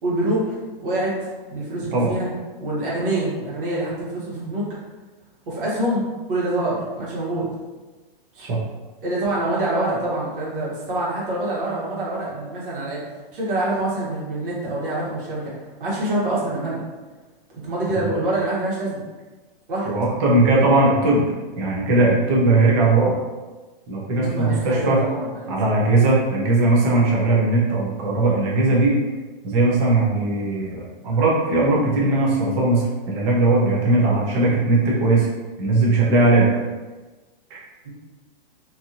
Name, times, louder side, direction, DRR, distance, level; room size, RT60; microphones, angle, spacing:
voice 1, 0.0-2.3 2.6-4.7 5.5-7.5 8.3-8.5 9.0-13.0 13.3-15.5 15.8-16.8 17.5-19.0 19.7-19.9 24.2-25.6 37.8-37.9, right 1 dB, 65° right, -6 dB, 1.2 m, -25 dB
voice 2, 19.9-21.3 21.6-23.2 23.9-25.0 25.5-29.0 29.4-35.3 35.6-36.5 37.5-37.6, right 2 dB, 15° right, -5 dB, 0.3 m, -19 dB
2.6 x 2.4 x 2.7 m, 1.2 s
hypercardioid pair, 155°, 29 cm